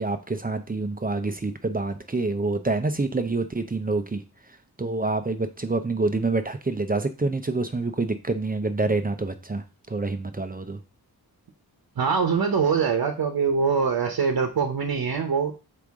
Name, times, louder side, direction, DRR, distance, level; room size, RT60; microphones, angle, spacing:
voice 1, 0.0-4.2 4.8-10.8, right 3 dB, 25° right, 8 dB, 0.6 m, -27 dB
voice 2, 12.0-15.5, right 5 dB, 70° right, 4 dB, 1.0 m, -23 dB
6.4 x 4.9 x 3.6 m, 0.31 s
wide cardioid pair, 105°, 38 cm